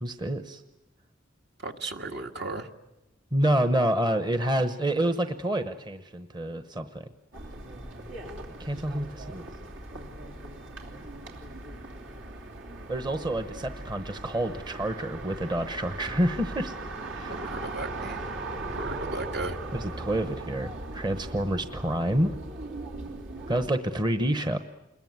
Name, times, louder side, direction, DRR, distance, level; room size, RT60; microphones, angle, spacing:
voice 1, 0.0-0.6 3.3-7.0 8.6-9.4 12.9-16.7 17.0-17.3 19.7-22.3 23.5-24.6, right 1 dB, 25° right, 9 dB, 1.0 m, -28 dB
voice 2, 1.6-2.7 17.2-18.2 18.7-19.6, right 2 dB, 60° right, 4 dB, 1.8 m, -35 dB
sound 1, 7.3-23.7, right 2 dB, 75° right, 3.3 m, -39 dB
27.5 x 22.0 x 9.4 m, 0.98 s
head